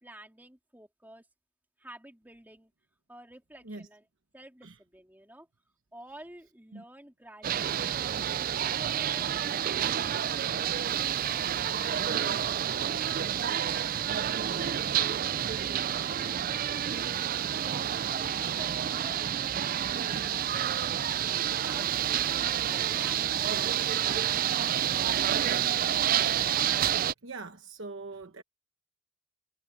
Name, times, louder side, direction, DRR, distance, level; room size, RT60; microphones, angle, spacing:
voice 1, 0.0-1.3 1.8-2.7 3.1-4.0 4.3-5.5 5.9-7.9 17.6-19.8 21.5-24.8, right 1 dB, 10° right, 3.3 m, -51 dB
sound 1, 7.4-27.1, right 10 dB, 40° right, 0.3 m, -29 dB
voice 2, 27.2-28.4, right 3 dB, 55° right, 1.1 m, -42 dB
head